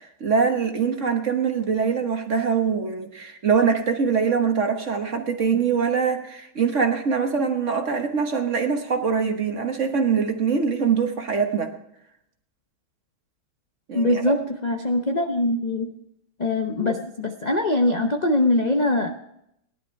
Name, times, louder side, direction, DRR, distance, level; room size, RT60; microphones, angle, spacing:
voice 1, 0.0-11.7 13.9-14.4, right 6 dB, 40° right, 4 dB, 1.2 m, -23 dB
voice 2, 13.9-15.9 16.4-19.1, left 1 dB, 60° left, 3 dB, 0.4 m, -22 dB
17.5 x 11.5 x 4.5 m, 0.77 s
omnidirectional pair, 2.3 m